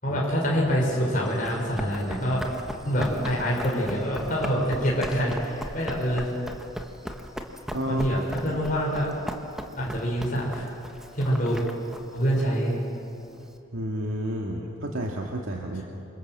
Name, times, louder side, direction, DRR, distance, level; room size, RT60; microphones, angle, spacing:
voice 1, 0.0-2.4 2.8-6.3 7.9-9.1 9.8-10.6 11.1-11.6 12.1-12.7, equal, 40° left, -4 dB, 5.3 m, -26 dB
Run, 1.3-13.5, equal, ahead, 1.3 m, -38 dB
voice 2, 7.7-8.1 8.4-8.6 13.7-15.8, equal, 80° right, -1 dB, 2.2 m, -31 dB
28.0 x 26.0 x 7.6 m, 2.9 s
head